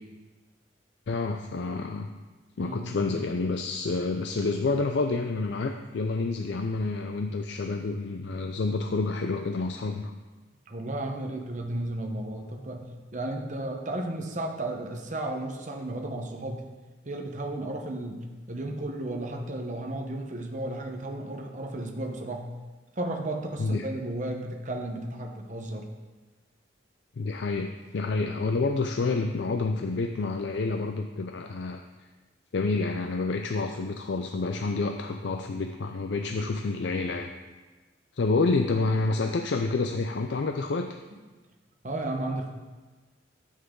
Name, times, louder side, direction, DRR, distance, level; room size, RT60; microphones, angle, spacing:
voice 1, 1.1-2.1 2.6-10.1 23.6-23.9 27.2-31.8 32.5-37.3 38.1-41.0, left 3 dB, 60° left, 5 dB, 0.4 m, -28 dB
voice 2, 2.6-2.9 10.7-16.7 17.0-18.2 18.5-22.5 22.9-25.9 41.8-42.5, right 1 dB, 40° right, 3 dB, 1.0 m, -34 dB
9.5 x 8.2 x 3.8 m, 1.3 s
head